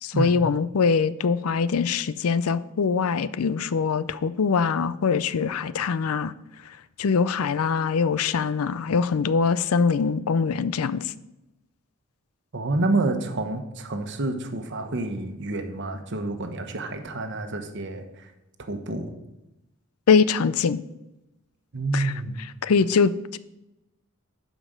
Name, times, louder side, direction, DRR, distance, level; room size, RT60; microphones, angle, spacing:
voice 1, 0.0-6.3 7.0-11.0 20.1-20.8 21.9-22.1 22.6-23.4, left 5 dB, 75° left, 16 dB, 0.5 m, -23 dB
voice 2, 12.5-18.3 18.7-19.1 21.7-22.5, right 2 dB, 55° right, 6 dB, 1.1 m, -28 dB
11.0 x 5.1 x 6.5 m, 0.94 s
head